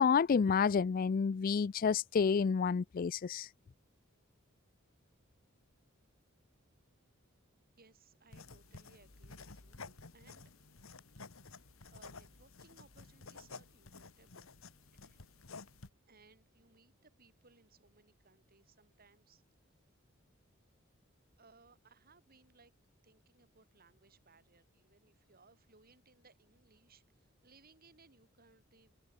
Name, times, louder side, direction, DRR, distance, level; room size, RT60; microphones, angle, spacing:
voice 1, 0.0-3.5, left 6 dB, 45° left, 0.4 m, -29 dB
voice 2, 7.8-10.5 11.9-14.6 15.0-15.3 16.1-19.4 21.4-22.7 23.0-28.9, right 4 dB, 45° right, 4.9 m, -65 dB
sound 1, 8.3-15.9, left 4 dB, 80° left, 1.8 m, -53 dB
head